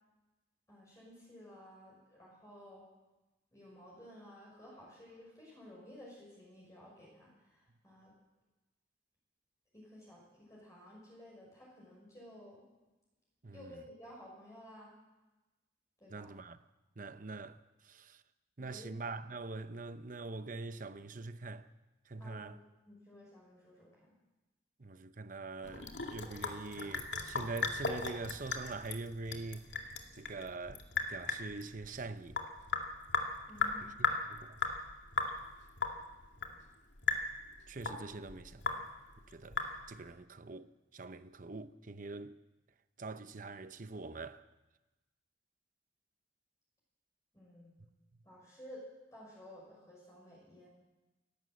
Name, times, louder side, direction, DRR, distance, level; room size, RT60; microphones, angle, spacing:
voice 1, 0.7-2.9 3.5-8.1 9.7-12.6 13.5-14.9 16.0-16.4 18.6-19.0 22.2-22.6 22.9-24.1 33.5-33.9 47.3-47.7 48.2-48.8 49.1-50.7, left 1 dB, 15° left, 6.1 m, -54 dB
voice 2, 16.1-16.6 17.0-18.2 18.6-21.6 22.1-22.6 24.8-29.7 30.1-30.8 31.1-32.4 34.3-34.6 37.7-38.8 39.3-39.6 39.9-42.3 43.0-44.4, right 3 dB, 45° right, 0.8 m, -44 dB
Sink (filling or washing) / Drip, 25.6-40.1, left 4 dB, 75° left, 2.3 m, -37 dB
28.5 x 12.0 x 7.8 m
head